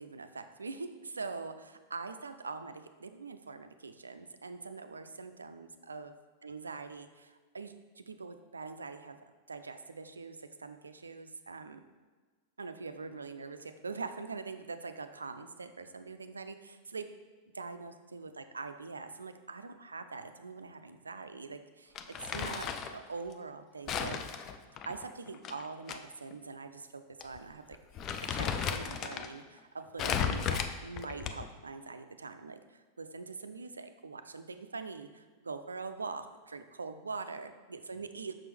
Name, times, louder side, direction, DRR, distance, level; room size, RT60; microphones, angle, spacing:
voice 1, 0.0-6.2 6.4-9.2 9.5-11.8 12.6-17.1 17.5-24.2 24.9-27.8 28.3-38.3, right 4 dB, 75° right, 9 dB, 0.4 m, -43 dB
Crumpling crinkling, 22.0-23.0 23.9-26.0 26.3-26.4 27.2-27.4 27.7-29.3 30.0-31.6, left 7 dB, 30° left, 0.4 m, -35 dB
6.0 x 5.9 x 3.3 m, 1.4 s
figure-of-eight pair, 90°, 0 cm